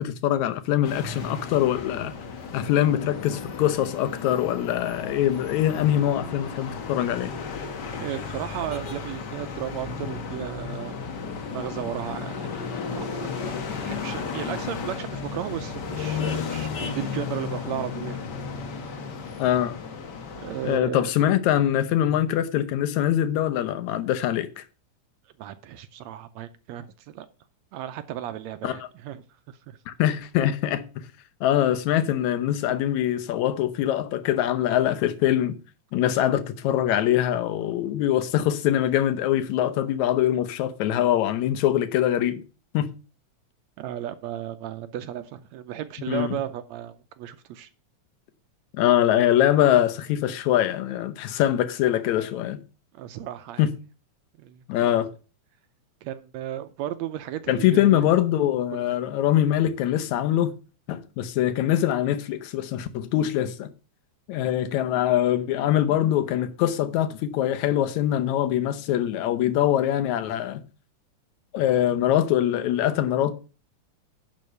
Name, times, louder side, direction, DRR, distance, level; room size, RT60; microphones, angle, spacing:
voice 1, 0.0-2.1 2.5-7.3 19.4-19.8 20.6-24.6 28.6-28.8 29.9-31.0 31.4-35.6 35.9-42.4 42.7-42.9 46.1-46.4 48.7-52.6 53.6-53.7 54.7-55.1 57.5-60.5 60.9-63.7 64.3-70.6 71.5-73.3, left 11 dB, 75° left, 2.2 m, -23 dB
sound 1, 0.8-20.8, left 5 dB, 55° left, 1.2 m, -34 dB
voice 2, 8.0-11.0 11.5-18.2 20.4-21.1 25.4-27.3 27.7-29.8 43.8-47.7 52.9-53.6 54.4-55.0 56.0-58.1 58.7-58.8, right 11 dB, 80° right, 1.8 m, -35 dB
11.0 x 4.5 x 6.6 m
omnidirectional pair, 3.4 m